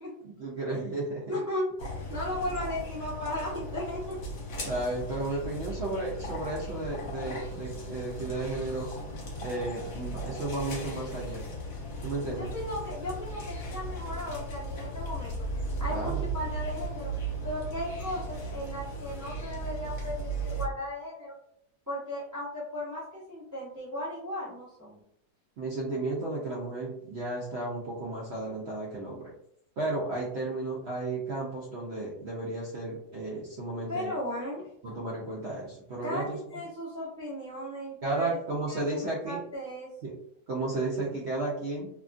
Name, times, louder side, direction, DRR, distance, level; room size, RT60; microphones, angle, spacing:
voice 1, 0.2-1.2 4.6-8.9 9.4-11.4 12.0-12.5 15.9-16.3 25.6-29.3 29.8-34.1 34.8-36.4 38.0-39.4 40.0-40.2 40.5-41.9, right 2 dB, 70° right, -4 dB, 0.6 m, -33 dB
voice 2, 1.3-4.2 12.3-15.3 15.8-17.1 17.4-21.3 21.9-25.0 33.9-35.0 36.0-38.4 38.7-39.9, left 1 dB, 20° right, -8 dB, 0.4 m, -36 dB
sound 1, 1.8-20.7, right 1 dB, 60° left, 1.2 m, -37 dB
2.8 x 2.3 x 2.5 m, 0.73 s
omnidirectional pair, 1.7 m